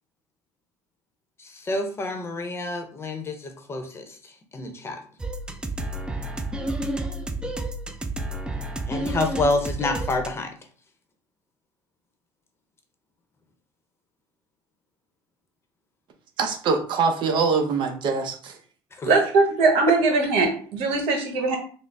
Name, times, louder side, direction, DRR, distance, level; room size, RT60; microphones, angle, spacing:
voice 1, 1.4-4.2 4.5-5.0 8.9-10.5 19.0-19.1, left 2 dB, 25° left, 5 dB, 0.7 m, -28 dB
sound 1, 5.2-10.3, right 1 dB, 10° right, 0.4 m, -30 dB
voice 2, 16.4-18.5, right 5 dB, 55° right, 5 dB, 0.6 m, -23 dB
voice 3, 19.1-21.6, right 3 dB, 75° right, 3 dB, 1.1 m, -20 dB
3.9 x 2.0 x 3.4 m, 0.43 s
supercardioid pair, 100°, 10 cm